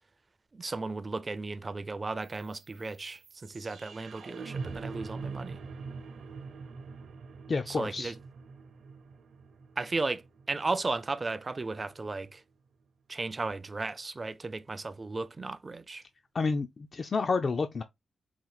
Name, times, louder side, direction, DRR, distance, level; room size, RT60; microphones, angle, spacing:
voice 1, 0.5-5.6 7.7-8.2 9.8-10.2 10.5-12.4 13.1-16.0, right 3 dB, 30° right, 0.4 m, -35 dB
sound 1, 2.2-12.2, right 4 dB, 70° right, 0.7 m, -44 dB
voice 2, 7.5-8.1 16.3-17.8, left 4 dB, 40° left, 0.3 m, -29 dB
4.3 x 2.4 x 3.9 m
cardioid pair, 95°, 0 cm